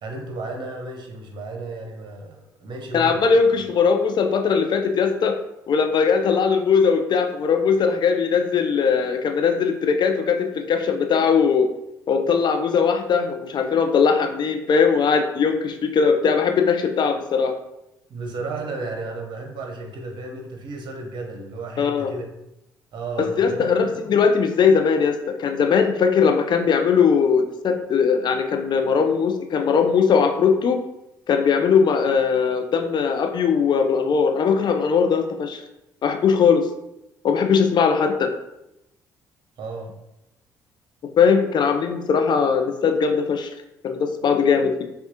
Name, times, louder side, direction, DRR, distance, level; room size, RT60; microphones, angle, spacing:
voice 1, 0.0-3.4 18.1-22.3 22.9-23.9 39.6-39.9, right 3 dB, 55° right, 1 dB, 0.9 m, -33 dB
voice 2, 2.9-5.4 5.7-11.7 12.1-17.5 21.8-22.1 23.2-30.8 31.3-35.6 36.0-36.7 37.2-38.3 41.2-43.5 43.8-44.8, left 6 dB, 50° left, 6 dB, 0.6 m, -20 dB
5.7 x 2.3 x 2.8 m, 0.87 s
hypercardioid pair, 55°, 10 cm